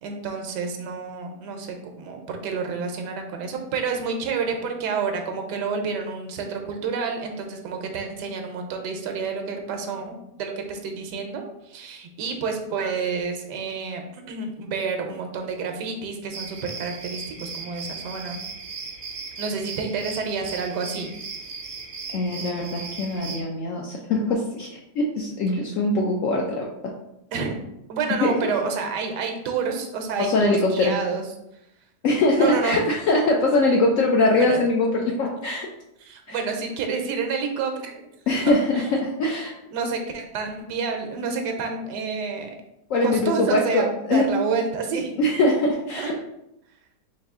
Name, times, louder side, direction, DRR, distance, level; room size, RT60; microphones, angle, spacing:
voice 1, 0.0-18.4 19.4-21.1 27.3-27.6 27.9-31.2 32.4-32.8 34.4-34.6 36.0-38.0 38.4-38.6 39.7-42.5 43.0-45.2 45.9-46.1, right 5 dB, 80° right, 4 dB, 1.2 m, -29 dB
sound 1, 16.3-23.4, right 4 dB, 65° right, 0.6 m, -37 dB
voice 2, 22.1-26.7 28.2-28.3 30.2-30.9 32.0-35.7 36.3-36.4 38.3-39.5 42.9-44.2 45.2-46.1, left 2 dB, 70° left, -1 dB, 0.7 m, -22 dB
4.0 x 2.6 x 3.5 m, 0.84 s
omnidirectional pair, 1.8 m